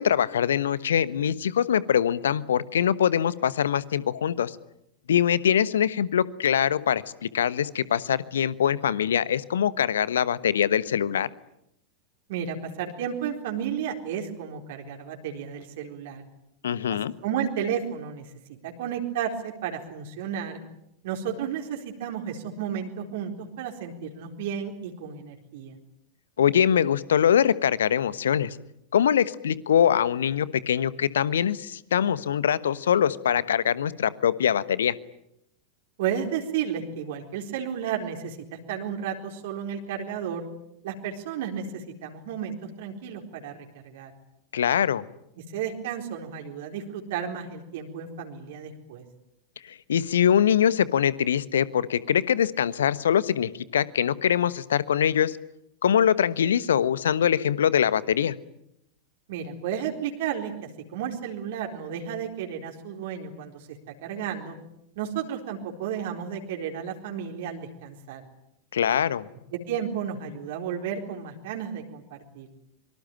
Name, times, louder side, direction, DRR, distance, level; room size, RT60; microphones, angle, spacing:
voice 1, 0.0-4.6 5.1-11.3 16.6-17.1 26.4-28.6 28.9-34.9 44.5-45.0 49.7-55.4 55.8-58.3 68.7-69.3, left 9 dB, 65° left, 17 dB, 1.2 m, -23 dB
voice 2, 12.3-16.3 16.9-18.2 18.6-20.6 21.0-25.8 36.0-40.5 40.8-43.5 43.8-44.1 45.5-49.0 59.3-60.5 60.9-63.7 64.0-64.5 65.0-68.2 69.5-72.5, right 8 dB, 55° right, 2 dB, 4.1 m, -32 dB
25.0 x 24.0 x 9.1 m, 0.80 s
figure-of-eight pair, 90°, 0 cm